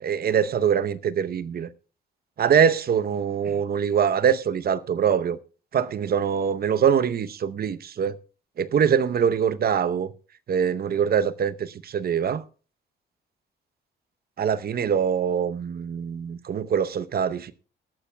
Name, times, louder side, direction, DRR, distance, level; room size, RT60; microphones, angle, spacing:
voice 1, 0.0-1.7 2.4-5.4 5.7-8.2 8.6-10.1 10.5-12.4 14.4-17.5, right 7 dB, 50° right, 0.8 m, -23 dB
22.0 x 12.0 x 2.2 m
cardioid pair, 90°, 20 cm